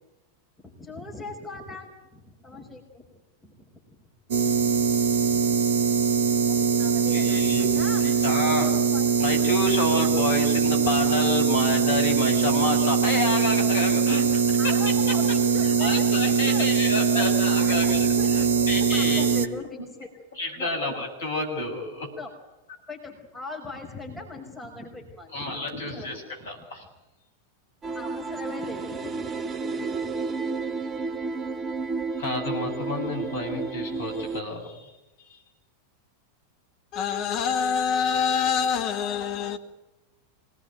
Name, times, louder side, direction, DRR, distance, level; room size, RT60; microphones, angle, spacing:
voice 1, 0.6-3.1 3.4-3.7 6.8-8.0 8.6-9.2 14.6-16.7 17.1-17.4 17.7-18.5 18.9-20.1 20.6-20.7 22.2-22.3 22.9-25.4 25.9-26.1 26.4-26.5 27.9-29.4 29.7-30.2, left 2 dB, 5° left, 5.3 m, -40 dB
sound 1, 4.3-19.5, right 6 dB, 55° right, 1.7 m, -22 dB
voice 2, 7.1-7.7 8.0-8.8 9.2-14.8 15.1-15.3 15.8-19.3 20.3-22.1 25.3-26.8 32.2-34.9 35.3-35.4, left 2 dB, 65° left, 7.4 m, -29 dB
sound 2, 27.8-34.4, right 4 dB, 20° right, 1.1 m, -31 dB
voice 3, 36.9-39.6, left 7 dB, 40° left, 2.5 m, -25 dB
25.5 x 19.5 x 9.3 m
figure-of-eight pair, 90°, 0 cm